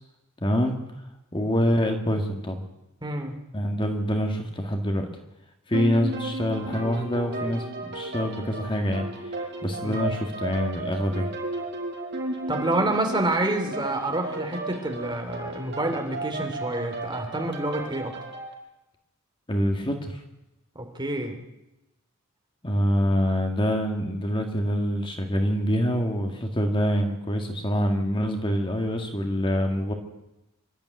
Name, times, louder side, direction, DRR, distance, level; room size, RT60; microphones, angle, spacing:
voice 1, 0.4-0.8 1.3-2.6 3.5-5.1 5.7-9.4 9.6-11.3 19.5-20.2 22.6-29.9, equal, 25° left, 4 dB, 1.9 m, -25 dB
voice 2, 3.0-3.4 9.8-10.1 12.5-18.1 20.7-21.4, right 2 dB, 20° right, 4 dB, 3.0 m, -28 dB
sound 1, 5.7-18.5, right 2 dB, 55° right, 6.0 m, -34 dB
25.0 x 12.5 x 9.6 m, 0.94 s
head